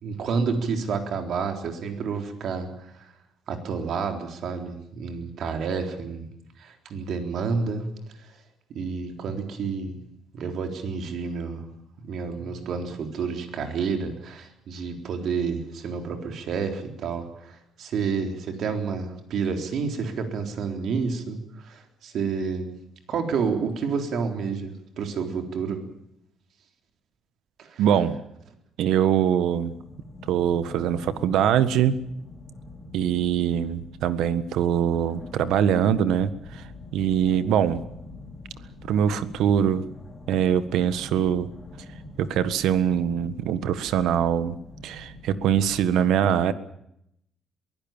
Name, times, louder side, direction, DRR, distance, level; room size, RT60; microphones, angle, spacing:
voice 1, 0.0-3.1 3.5-6.3 6.6-7.9 8.2-8.4 8.7-10.1 10.3-11.7 12.0-22.8 23.1-25.8 27.6-27.8, right 5 dB, 55° right, 5 dB, 3.9 m, -30 dB
voice 2, 27.8-28.2 28.8-29.7 30.3-32.0 32.9-37.8 38.9-39.9 40.3-41.5 42.2-44.6 44.8-46.5, right 9 dB, 75° right, 13 dB, 1.6 m, -23 dB
sound 1, 29.7-45.9, left 2 dB, 15° left, 2.7 m, -44 dB
22.5 x 16.5 x 9.0 m, 0.76 s
cardioid pair, 145°, 0 cm